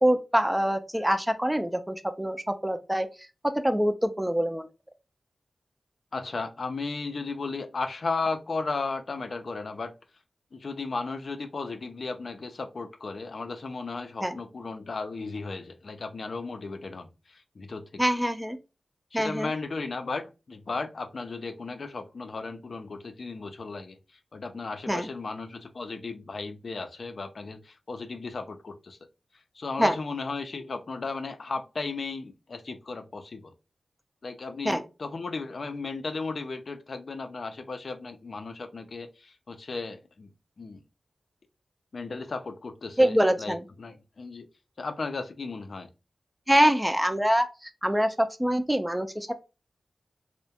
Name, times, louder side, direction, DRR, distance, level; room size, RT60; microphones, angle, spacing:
voice 1, 0.0-3.1 3.4-4.7 14.2-14.4 18.0-18.6 19.1-19.5 24.9-25.1 29.8-30.0 34.6-34.8 43.0-43.6 46.5-49.3, equal, 10° right, 8 dB, 0.3 m, -25 dB
voice 2, 6.1-9.9 10.5-18.0 19.1-24.0 24.3-29.0 29.5-33.5 34.2-40.8 41.9-44.5 44.8-45.9, left 3 dB, 65° left, 7 dB, 0.4 m, -35 dB
2.3 x 2.1 x 2.7 m, 0.29 s
cardioid pair, 60°, 0 cm